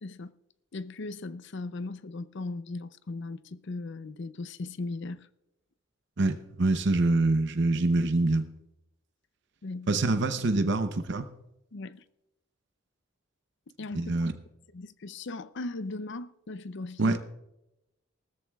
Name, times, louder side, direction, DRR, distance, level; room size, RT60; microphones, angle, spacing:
voice 1, 0.0-0.3 0.7-5.3 9.6-10.0 11.7-12.0 13.8-14.1 14.7-17.2, left 2 dB, 60° left, 0.5 m, -38 dB
voice 2, 6.2-8.5 9.9-11.3 13.9-14.3 17.0-17.2, right 2 dB, 60° right, 0.7 m, -25 dB
19.0 x 13.5 x 2.3 m
head